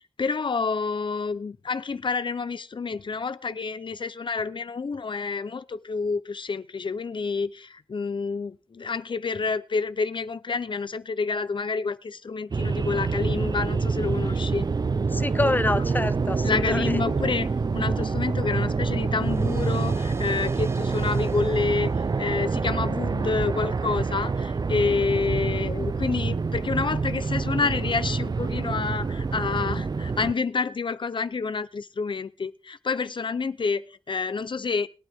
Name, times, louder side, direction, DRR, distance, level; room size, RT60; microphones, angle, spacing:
voice 1, 0.0-14.7 16.4-21.9 22.2-34.9, left 4 dB, 65° left, 0.7 m, -28 dB
sound 1, 12.5-30.3, right 4 dB, 50° right, 0.5 m, -26 dB
voice 2, 15.1-17.3, left 2 dB, 20° left, 0.7 m, -27 dB
sound 2, 19.2-24.0, right 2 dB, 30° right, 1.0 m, -42 dB
21.5 x 9.2 x 3.6 m
wide cardioid pair, 75°, 9 cm